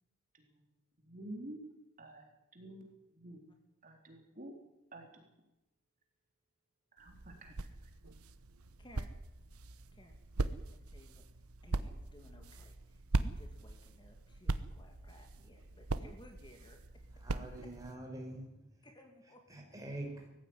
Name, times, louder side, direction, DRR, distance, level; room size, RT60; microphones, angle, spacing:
voice 1, 1.0-1.6 2.0-2.3 2.5-3.4 3.8-4.5 4.9-5.1 7.0-7.5, right 1 dB, 40° right, 2 dB, 3.8 m, -49 dB
sound 1, 7.0-17.9, right 2 dB, 85° right, 1.1 m, -40 dB
voice 2, 8.8-9.1 9.9-11.2 11.6-16.8 18.8-19.9, left 1 dB, 20° left, 4 dB, 2.5 m, -59 dB
voice 3, 17.2-18.9 19.5-20.3, right 1 dB, 15° right, 1 dB, 5.1 m, -45 dB
19.5 x 15.0 x 9.6 m, 0.92 s
head